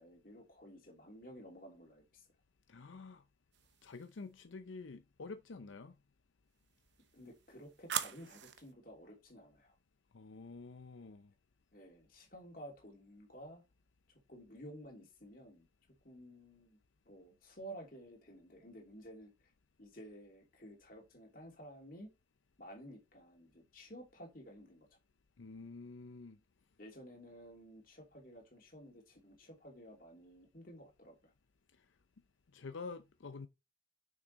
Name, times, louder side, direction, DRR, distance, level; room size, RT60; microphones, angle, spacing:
voice 1, 0.0-2.3 7.1-9.7 11.7-13.6 14.3-15.7 16.0-16.8 17.1-19.5 19.8-22.1 22.6-24.9 26.8-31.3, equal, 45° left, 2.9 m, -53 dB
voice 2, 2.7-3.2 3.8-6.0 10.1-11.3 25.4-26.4 31.8-31.9 32.5-33.5, left 4 dB, 90° left, 0.6 m, -48 dB
sound 1, 3.5-4.2 6.6-8.7, right 8 dB, 70° right, 0.8 m, -43 dB
6.5 x 6.1 x 4.1 m
head